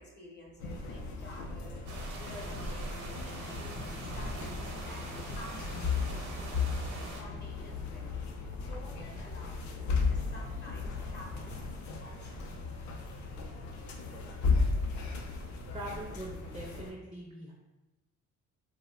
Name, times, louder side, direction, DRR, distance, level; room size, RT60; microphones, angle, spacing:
voice 1, 0.0-8.1 8.6-9.7 9.9-12.5, left 1 dB, 35° left, -3 dB, 0.7 m, -51 dB
sound 1, 0.6-16.9, left 4 dB, 70° left, 0.5 m, -35 dB
sound 2, 1.9-7.2, right 2 dB, 90° right, 0.7 m, -44 dB
sound 3, 2.9-11.8, left 5 dB, 85° left, 0.8 m, -47 dB
voice 2, 15.7-17.5, right 1 dB, 20° right, -2 dB, 0.4 m, -42 dB
2.7 x 2.0 x 2.3 m, 1.0 s
cardioid pair, 90°, 30 cm